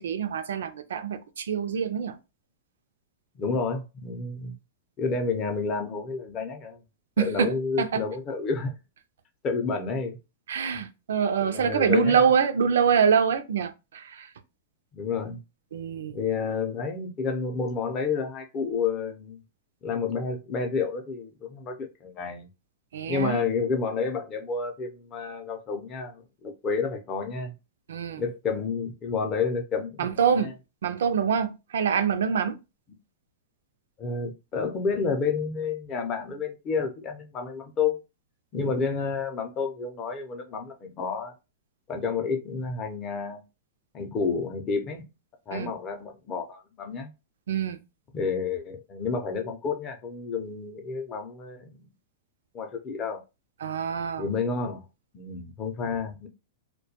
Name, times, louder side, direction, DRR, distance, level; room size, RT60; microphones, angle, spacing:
voice 1, 0.0-2.2 7.2-7.5 7.8-8.0 10.5-14.3 15.7-16.2 22.9-23.5 27.9-28.2 30.0-30.5 30.8-32.6 45.5-45.7 47.5-47.8 53.6-54.3, right 7 dB, 85° right, 0.4 m, -25 dB
voice 2, 3.4-4.6 5.0-6.8 7.2-8.7 9.4-10.2 11.4-12.2 14.9-15.4 16.1-19.4 19.8-22.5 23.1-27.5 28.2-30.5 34.0-38.0 38.5-41.3 41.9-43.4 43.9-45.0 45.5-47.1 48.1-51.9 52.5-53.2 54.2-54.8 55.1-56.3, left 5 dB, 25° left, 0.5 m, -30 dB
2.2 x 2.2 x 2.7 m
supercardioid pair, 150°, 0 cm